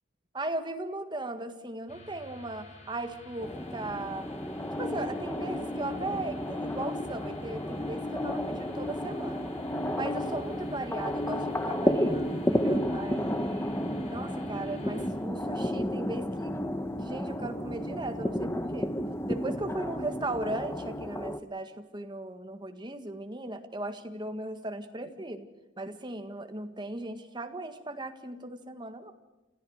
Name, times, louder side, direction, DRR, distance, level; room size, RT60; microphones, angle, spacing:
voice 1, 0.3-4.3 4.8-9.5 9.9-13.8 14.1-18.9 19.3-25.5 25.8-29.1, right 2 dB, 25° right, 7 dB, 1.7 m, -37 dB
sound 1, 1.9-15.1, equal, 35° left, 6.9 m, -51 dB
sound 2, 3.4-21.4, left 1 dB, 15° left, 0.9 m, -32 dB
29.0 x 14.5 x 6.5 m, 1.1 s
head